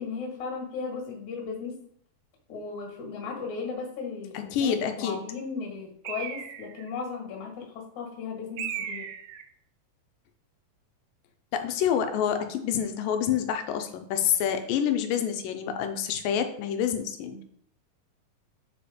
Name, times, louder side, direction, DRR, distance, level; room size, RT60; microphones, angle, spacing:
voice 1, 0.0-1.8 2.5-9.1, left 5 dB, 65° left, 1 dB, 2.8 m, -36 dB
voice 2, 4.3-5.2 11.5-17.4, left 8 dB, 90° left, 7 dB, 2.5 m, -27 dB
Bird, 6.1-6.9 8.6-9.5, right 9 dB, 75° right, 1.9 m, -36 dB
7.7 x 4.3 x 5.0 m, 0.65 s
omnidirectional pair, 3.9 m